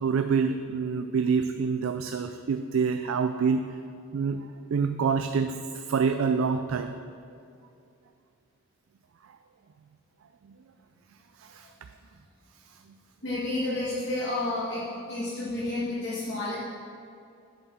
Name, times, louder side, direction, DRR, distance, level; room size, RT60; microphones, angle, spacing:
voice 1, 0.0-3.6 4.1-4.4 4.7-6.9 11.4-11.7, right 5 dB, 85° right, 8 dB, 0.4 m, -26 dB
voice 2, 13.2-14.8 15.1-16.6, left 2 dB, 55° left, -10 dB, 1.9 m, -30 dB
7.9 x 6.3 x 6.1 m, 2.5 s
head